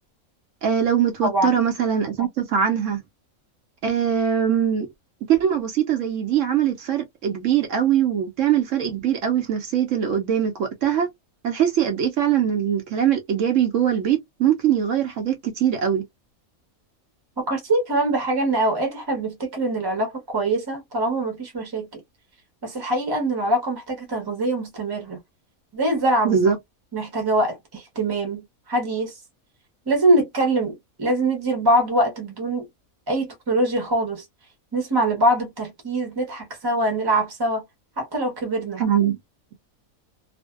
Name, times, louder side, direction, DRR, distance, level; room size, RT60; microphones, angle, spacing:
voice 1, 0.6-3.0 3.8-4.9 5.3-11.1 11.4-16.0 26.2-26.6 38.8-39.2, right 9 dB, 70° right, 0.9 m, -22 dB
voice 2, 1.2-1.6 17.4-22.0 22.6-25.2 25.7-26.5 26.9-29.1 29.9-32.7 33.1-34.2 34.7-37.6 38.0-38.8, right 1 dB, 20° right, 0.7 m, -23 dB
2.5 x 2.1 x 2.3 m
omnidirectional pair, 1.5 m